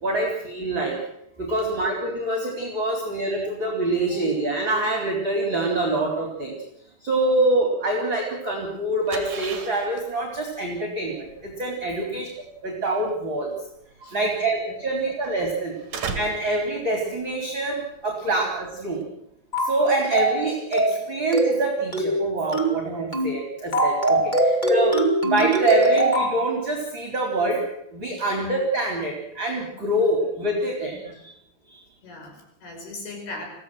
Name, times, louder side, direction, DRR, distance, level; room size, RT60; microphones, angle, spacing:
voice 1, 0.0-1.0 1.4-6.6 7.0-12.3 12.6-13.5 14.1-15.8 16.1-19.0 19.6-24.9 25.2-27.6 27.9-31.3 31.7-31.8, right 2 dB, 25° right, 1 dB, 3.6 m, -25 dB
sound 1, 8.6-19.0, right 5 dB, 45° right, 2.8 m, -39 dB
voice 2, 11.9-12.2 14.0-14.3 28.1-28.2 31.0-31.2 32.0-33.5, left 2 dB, 50° left, 3 dB, 7.1 m, -40 dB
sound 2, 19.5-19.8 20.1-20.4 20.7-21.0 21.3-21.6 21.9-22.2 22.5-22.8 23.1-23.4 23.7-26.4, right 1 dB, 65° left, 0.4 m, -21 dB
23.5 x 16.0 x 7.8 m, 0.79 s
omnidirectional pair, 6.0 m